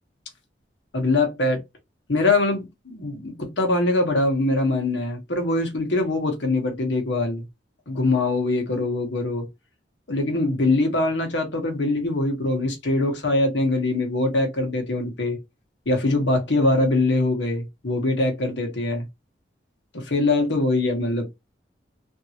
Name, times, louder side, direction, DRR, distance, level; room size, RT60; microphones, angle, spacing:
voice 1, 0.9-1.6 2.1-7.4 7.9-9.5 10.1-15.4 15.9-19.1 19.9-21.3, left 2 dB, 80° left, 1.2 m, -23 dB
3.6 x 2.6 x 2.8 m
head